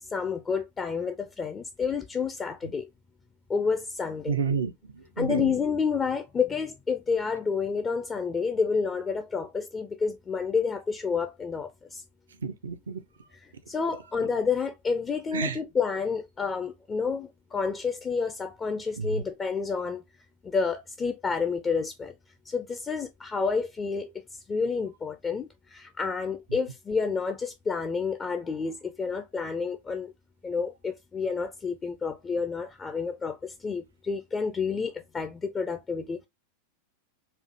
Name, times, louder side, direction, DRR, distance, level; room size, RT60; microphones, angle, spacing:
voice 1, 0.0-2.9 3.5-4.3 5.2-12.0 13.3-20.0 20.4-22.1 22.5-30.1 30.4-36.3, left 5 dB, 20° left, 0.4 m, -29 dB
voice 2, 4.3-5.5 12.4-13.0 15.3-15.6 19.0-19.2, right 5 dB, 65° right, 0.4 m, -30 dB
4.3 x 2.4 x 2.5 m
figure-of-eight pair, 90°, 0 cm